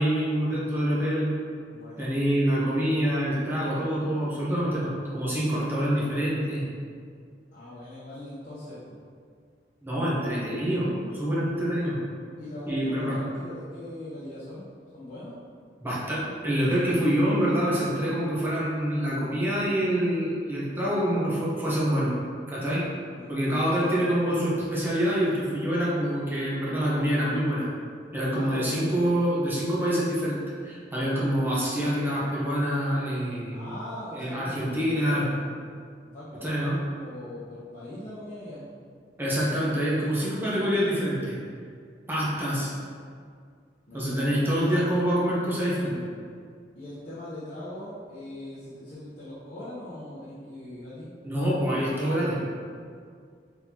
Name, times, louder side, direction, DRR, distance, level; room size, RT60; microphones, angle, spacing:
voice 1, 0.0-1.3 2.0-6.7 9.8-12.0 12.7-13.2 15.8-22.1 22.5-22.8 23.3-27.6 28.1-33.6 34.1-35.2 36.4-36.8 39.2-41.4 42.1-42.7 43.9-46.0 51.2-52.5, equal, 10° right, -8 dB, 0.9 m, -26 dB
voice 2, 1.7-2.0 7.5-9.0 12.4-14.7 14.9-15.4 23.1-23.3 28.3-28.8 33.5-35.4 36.0-38.6 43.9-45.0 46.7-51.1, left 1 dB, 50° left, -11 dB, 0.9 m, -41 dB
4.1 x 4.0 x 2.8 m, 2.1 s
head